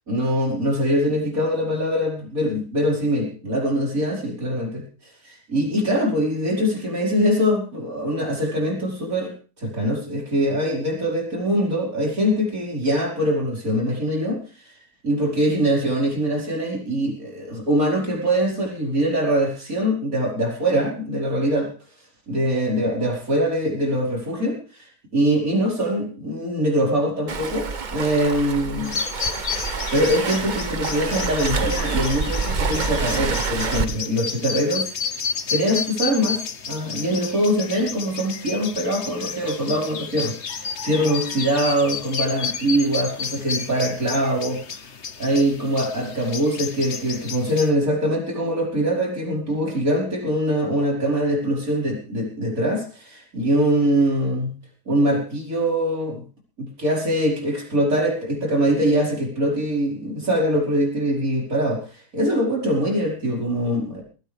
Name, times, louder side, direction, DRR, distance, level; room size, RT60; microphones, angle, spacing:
voice 1, 0.1-4.8 5.2-9.3 9.6-14.7 15.0-21.7 22.3-24.9 25.1-29.0 29.9-34.9 35.5-44.8 45.2-54.5 54.9-56.2 56.6-64.0, equal, 55° right, -1 dB, 5.5 m, -23 dB
Waves surf, 27.3-33.8, right 5 dB, 35° right, 0.9 m, -27 dB
sound 1, 28.8-47.7, left 6 dB, 45° left, 1.3 m, -31 dB
20.5 x 16.0 x 3.5 m, 0.35 s
omnidirectional pair, 1.7 m